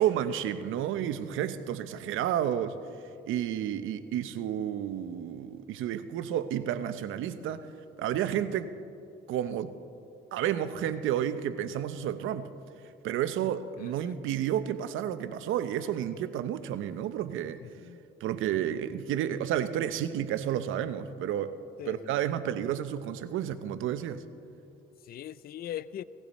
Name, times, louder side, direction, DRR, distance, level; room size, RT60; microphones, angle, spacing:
voice 1, 0.0-2.8 3.3-7.6 8.0-8.7 9.3-9.7 10.3-12.5 13.0-17.6 18.2-21.5 21.9-24.2, right 10 dB, 85° right, 12 dB, 0.7 m, -31 dB
voice 2, 13.8-14.2 17.6-18.0 21.8-22.2 25.0-26.0, left 11 dB, 50° left, 17 dB, 0.4 m, -41 dB
18.5 x 15.0 x 4.1 m, 2.6 s
cardioid pair, 90°, 20 cm